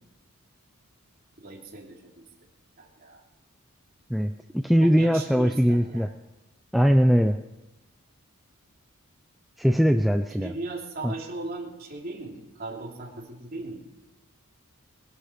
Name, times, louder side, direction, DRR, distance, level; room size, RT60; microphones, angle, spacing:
voice 1, 1.4-2.2 2.8-3.2 4.8-6.1 10.4-13.8, right 2 dB, 45° right, -2 dB, 3.1 m, -38 dB
voice 2, 4.1-6.1 6.7-7.4 9.6-10.5 11.0-11.1, equal, ahead, 5 dB, 0.4 m, -21 dB
21.0 x 11.5 x 5.1 m, 1.0 s
head